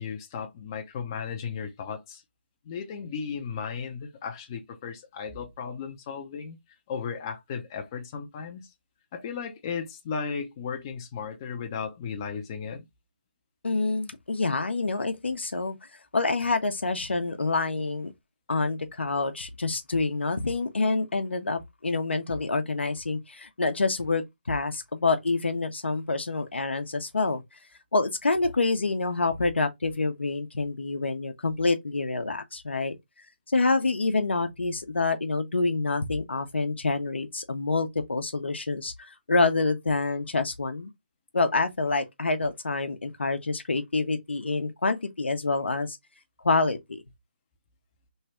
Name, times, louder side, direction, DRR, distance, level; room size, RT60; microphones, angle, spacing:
voice 1, 0.0-2.2 2.6-6.6 6.9-8.7 9.1-12.8, left 6 dB, 20° left, 0.5 m, -35 dB
voice 2, 13.6-15.8 16.1-18.1 18.5-27.4 27.9-32.9 33.5-40.9 41.3-46.0 46.4-47.0, left 3 dB, 90° left, 0.8 m, -27 dB
3.2 x 2.3 x 4.2 m
hypercardioid pair, 165°, 6 cm